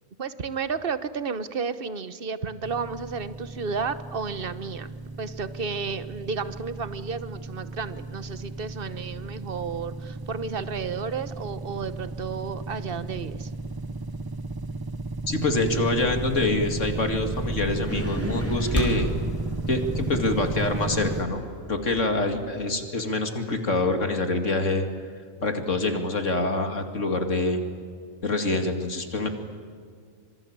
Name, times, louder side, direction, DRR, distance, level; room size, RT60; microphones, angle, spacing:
voice 1, 0.2-13.5, right 5 dB, 45° right, 13 dB, 1.3 m, -32 dB
sound 1, 2.6-21.2, right 2 dB, 20° right, 0.8 m, -34 dB
voice 2, 15.3-19.1 19.7-21.4 21.7-24.8 25.4-27.6 28.2-29.3, left 2 dB, 65° left, 6 dB, 2.7 m, -25 dB
sound 2, 17.9-22.7, equal, 10° left, 4.3 m, -34 dB
26.5 x 25.5 x 8.9 m, 2.1 s
omnidirectional pair, 1.4 m